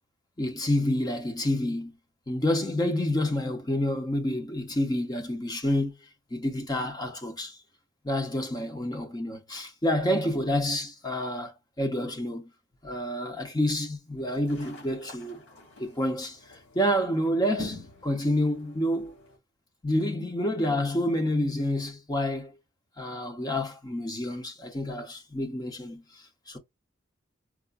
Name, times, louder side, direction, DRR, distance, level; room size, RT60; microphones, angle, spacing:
voice 1, 0.4-1.9 2.3-5.9 6.3-7.6 8.0-12.5 12.8-15.4 15.8-19.1 19.8-22.5 23.0-26.6, left 1 dB, 20° left, 0.6 m, -28 dB
sound 1, 14.2-19.4, left 2 dB, 70° left, 2.2 m, -47 dB
4.7 x 2.0 x 2.4 m
head